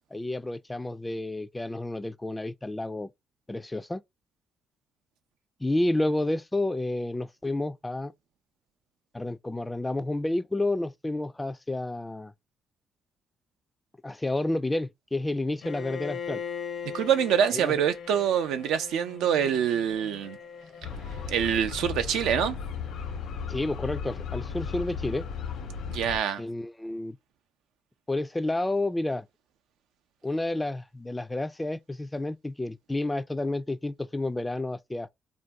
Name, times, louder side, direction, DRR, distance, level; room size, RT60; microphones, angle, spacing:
voice 1, 0.1-3.1 3.5-4.0 5.6-8.1 9.1-12.3 14.0-16.4 17.5-17.7 23.5-25.3 26.4-27.2 28.1-29.3 30.2-35.1, left 2 dB, 15° left, 0.3 m, -30 dB
Bowed string instrument, 15.6-21.6, left 7 dB, 65° left, 0.6 m, -40 dB
voice 2, 16.9-20.4 21.3-22.6 25.9-26.4, right 8 dB, 90° right, 0.5 m, -25 dB
sound 1, 20.8-26.2, left 6 dB, 85° left, 1.0 m, -35 dB
2.6 x 2.2 x 3.4 m
cardioid pair, 90°, 0 cm